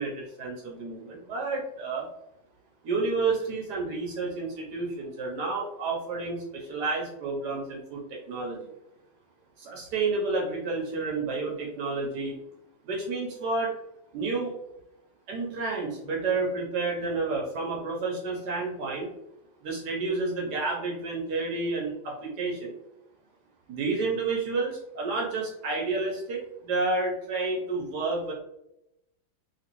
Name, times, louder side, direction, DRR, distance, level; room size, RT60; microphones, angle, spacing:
voice 1, 0.0-2.1 2.8-8.7 9.6-12.4 12.8-13.7 14.1-14.5 15.3-19.1 19.6-22.7 23.7-28.3, right 3 dB, 65° right, -1 dB, 1.2 m, -30 dB
3.2 x 2.9 x 2.9 m, 0.84 s
omnidirectional pair, 2.1 m